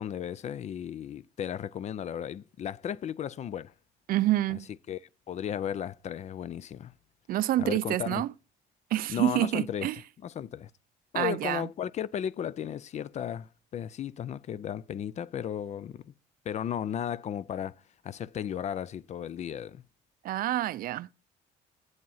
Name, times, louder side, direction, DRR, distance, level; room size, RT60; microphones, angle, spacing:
voice 1, 0.0-3.7 4.5-4.6 4.9-5.0 5.3-6.9 7.6-8.2 9.1-9.9 10.2-10.7 11.1-16.1 16.4-19.8, left 9 dB, 40° left, 0.4 m, -35 dB
voice 2, 4.1-4.7 7.3-8.3 8.9-10.0 11.1-11.7 20.2-21.1, right 14 dB, 60° right, 0.4 m, -27 dB
8.0 x 7.6 x 5.6 m
cardioid pair, 110°, 17 cm